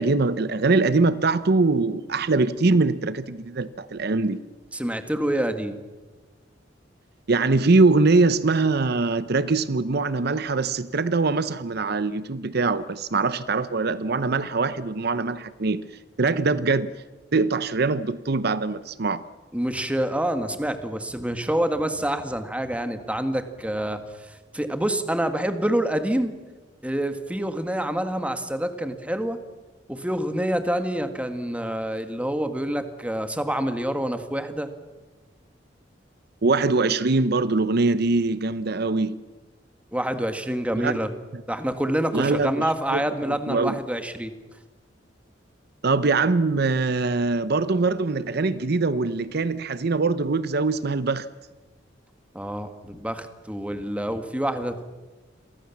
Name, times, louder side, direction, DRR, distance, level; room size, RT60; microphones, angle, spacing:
voice 1, 0.0-4.4 7.3-15.8 16.2-17.0 17.3-19.2 36.4-39.2 40.8-40.9 42.1-43.0 43.5-43.8 45.8-51.3, right 3 dB, 60° right, 0.8 m, -22 dB
voice 2, 4.7-5.8 19.5-26.3 26.8-29.4 29.9-34.7 39.9-41.1 41.5-44.3 52.3-54.9, right 1 dB, 5° right, 1.9 m, -27 dB
29.0 x 23.0 x 7.3 m
head